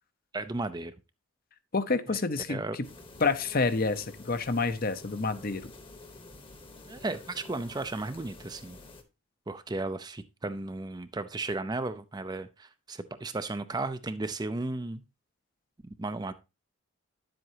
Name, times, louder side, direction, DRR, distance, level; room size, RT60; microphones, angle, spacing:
voice 1, 0.3-0.9 2.5-2.8 6.9-8.8 9.5-15.0 16.0-16.3, right 2 dB, 20° right, 0.4 m, -34 dB
voice 2, 1.7-2.6 3.2-5.7, left 4 dB, 40° left, 0.7 m, -28 dB
sound 1, 2.8-9.0, left 2 dB, 25° left, 1.0 m, -49 dB
10.0 x 7.8 x 2.8 m
head